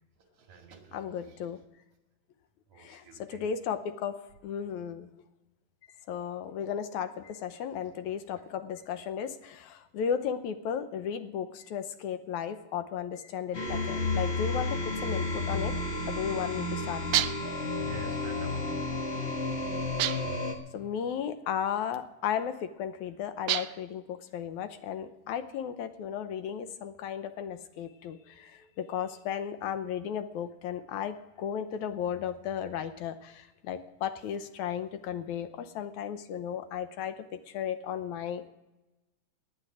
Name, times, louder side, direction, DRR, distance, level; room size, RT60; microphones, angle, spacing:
voice 1, 0.3-1.4 2.7-3.5 7.8-7.9 8.4-8.5 17.8-18.9 20.3-20.4, right 4 dB, 60° right, 3 dB, 3.4 m, -49 dB
voice 2, 0.9-1.6 2.8-4.1 4.4-5.1 6.1-15.7 16.1-17.2 20.7-37.1 37.5-38.5, left 8 dB, 75° left, 10 dB, 2.0 m, -35 dB
sound 1, 13.5-20.5, left 2 dB, 45° left, 0.8 m, -32 dB
sound 2, 17.1-17.6 20.0-20.5 23.5-23.9, right 14 dB, 80° right, 1.6 m, -29 dB
18.5 x 10.0 x 6.1 m, 1.0 s
omnidirectional pair, 3.8 m